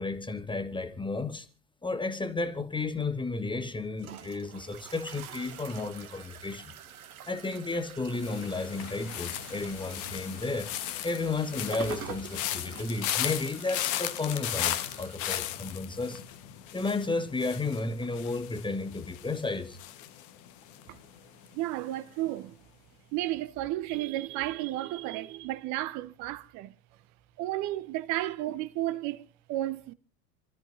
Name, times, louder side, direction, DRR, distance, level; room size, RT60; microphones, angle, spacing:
voice 1, 0.0-1.5 1.8-6.7 7.2-10.7 11.0-16.2 16.7-19.8, left 3 dB, 10° left, 1.3 m, -33 dB
sound 1, 3.4-15.2, right 8 dB, 70° right, 1.4 m, -46 dB
sound 2, 8.1-21.2 21.4-21.9, left 12 dB, 40° left, 1.4 m, -36 dB
voice 2, 21.5-22.5 23.1-26.7 27.4-29.2 29.5-29.9, right 15 dB, 40° right, 0.8 m, -33 dB
27.5 x 13.5 x 2.7 m
figure-of-eight pair, 80°, 45 cm